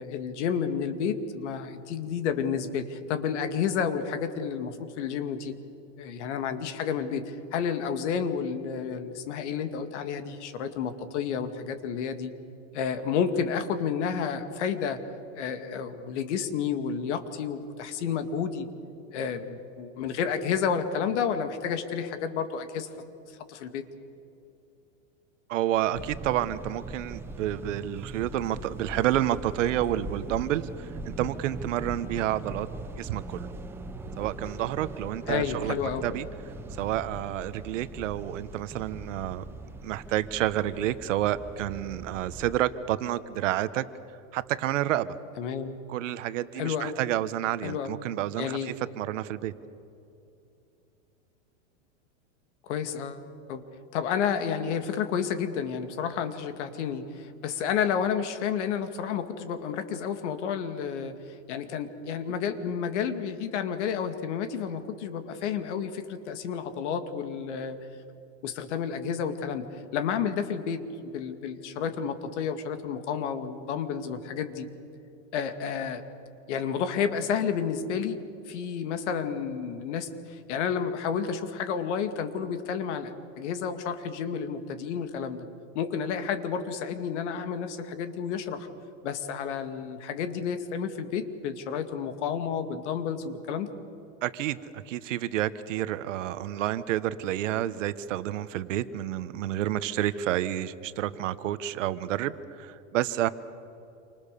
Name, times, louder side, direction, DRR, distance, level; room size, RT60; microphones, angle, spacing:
voice 1, 0.0-5.5 6.0-12.3 12.7-15.0 15.3-18.7 19.1-22.9 23.3-23.8 35.3-36.0 45.4-45.7 46.6-47.0 47.6-47.9 48.4-48.7 52.6-53.2 53.5-53.6 53.9-61.1 61.5-67.8 68.4-74.7 75.3-76.0 76.5-78.2 78.5-85.5 85.7-88.7 89.0-93.7, left 7 dB, 60° left, 9 dB, 2.3 m, -31 dB
voice 2, 25.5-32.7 33.0-33.5 34.2-35.7 36.0-36.3 36.8-39.5 39.8-43.8 44.3-45.2 45.9-49.5 94.2-103.3, right 13 dB, 70° right, 14 dB, 1.3 m, -29 dB
sound 1, 25.9-42.6, right 2 dB, 5° right, 0.6 m, -40 dB
28.0 x 25.5 x 6.9 m, 2.8 s
supercardioid pair, 165°, 39 cm